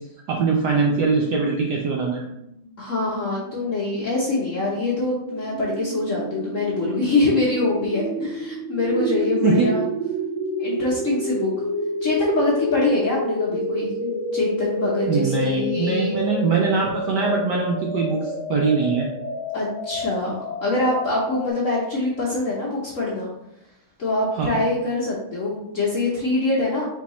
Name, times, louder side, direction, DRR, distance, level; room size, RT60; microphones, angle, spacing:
voice 1, 0.3-2.2 9.4-9.7 15.1-19.1 24.3-24.6, right 4 dB, 75° right, -1 dB, 1.0 m, -22 dB
sound 1, 2.4-21.5, equal, 25° right, 1.5 m, -30 dB
voice 2, 2.8-9.8 10.6-11.5 12.0-16.1 19.5-23.3 24.0-26.9, left 2 dB, 55° left, -6 dB, 0.9 m, -24 dB
4.6 x 3.5 x 3.0 m, 0.85 s
omnidirectional pair, 2.4 m